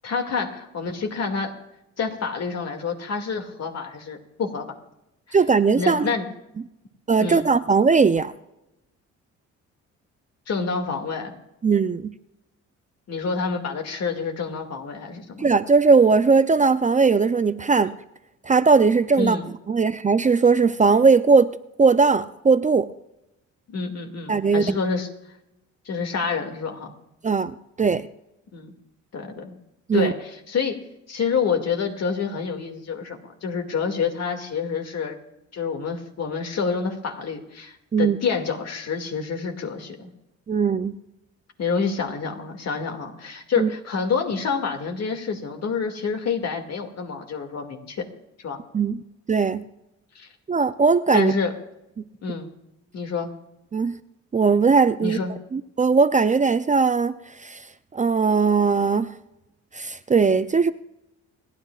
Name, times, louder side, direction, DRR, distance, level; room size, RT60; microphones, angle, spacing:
voice 1, 0.0-1.5 2.0-4.6 5.7-6.3 7.2-7.5 10.5-11.3 13.1-15.5 19.2-19.5 23.7-25.1 25.9-26.9 28.5-28.7 29.1-29.6 29.9-30.8 31.1-35.2 35.5-40.1 41.6-48.0 48.4-48.6 50.2-50.3 51.1-51.5 52.2-52.5 52.9-53.3 55.0-55.3, left 5 dB, 60° left, 2.3 m, -28 dB
voice 2, 5.3-6.1 7.1-8.3 11.6-12.2 15.4-18.0 18.4-19.4 19.7-22.9 24.3-24.8 27.2-28.1 29.9-30.1 37.9-38.2 40.5-40.9 43.6-43.7 48.7-49.0 49.3-49.6 50.5-51.3 53.7-54.0 54.3-55.2 55.5-57.6 57.9-59.1 59.7-60.7, right 4 dB, 25° right, 0.5 m, -19 dB
29.5 x 10.5 x 2.4 m
cardioid pair, 90°, 30 cm